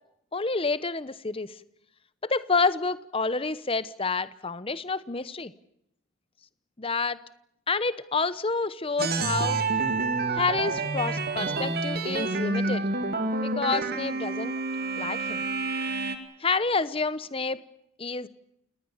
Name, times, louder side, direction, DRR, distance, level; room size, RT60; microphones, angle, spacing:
voice 1, 0.3-1.6 2.2-5.5 6.8-7.2 7.7-9.6 10.3-12.8 13.4-14.5 15.0-15.4 16.4-17.6 18.0-18.3, left 4 dB, 25° left, 15 dB, 0.9 m, -28 dB
sound 1, 9.0-16.2, right 3 dB, 45° right, 2.3 m, -28 dB
28.5 x 19.5 x 7.2 m, 0.77 s
head